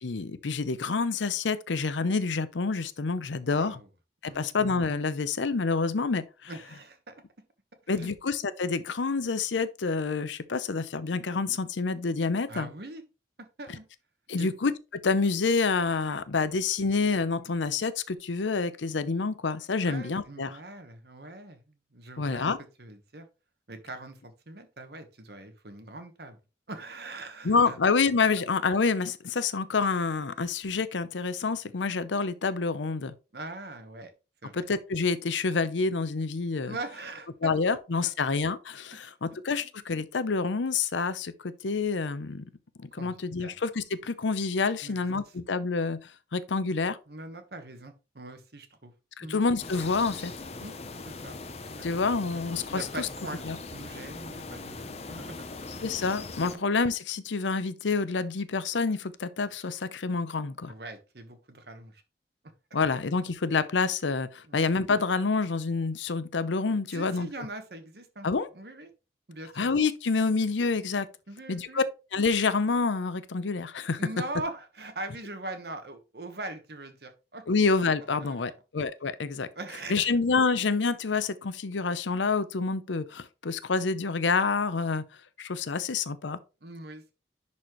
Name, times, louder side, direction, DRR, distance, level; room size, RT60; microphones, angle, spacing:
voice 1, 0.0-3.8 4.2-6.5 7.9-12.7 14.3-20.6 22.2-22.6 27.4-33.1 34.5-36.7 37.4-42.5 42.8-47.0 49.2-50.3 51.8-53.1 53.5-53.6 55.8-60.7 62.7-67.3 68.2-68.5 69.6-71.1 71.5-71.8 72.1-74.0 77.5-79.5 79.9-85.0 85.4-86.4, left 4 dB, 85° left, 0.7 m, -28 dB
voice 2, 3.4-3.9 4.2-4.5 6.5-7.1 8.0-8.1 12.5-13.0 13.6-13.9 14.4-14.5 19.8-21.6 21.9-22.4 22.8-23.3 23.7-26.4 26.7-27.8 33.3-34.1 34.4-34.6 36.6-37.5 38.0-38.1 39.6-39.7 43.0-43.1 43.4-43.5 44.8-45.1 47.1-48.9 49.2-49.4 50.6-50.8 51.0-51.4 51.8-51.9 52.7-55.3 56.5-56.7 60.7-62.0 64.5-64.7 66.9-68.3 68.5-68.9 69.3-69.7 71.3-71.9 74.0-77.5 78.1-78.4 79.5-80.1 86.6-87.1, right 2 dB, 60° right, 1.3 m, -41 dB
sound 1, 49.6-56.6, left 3 dB, 35° left, 0.7 m, -40 dB
10.5 x 4.2 x 3.1 m
head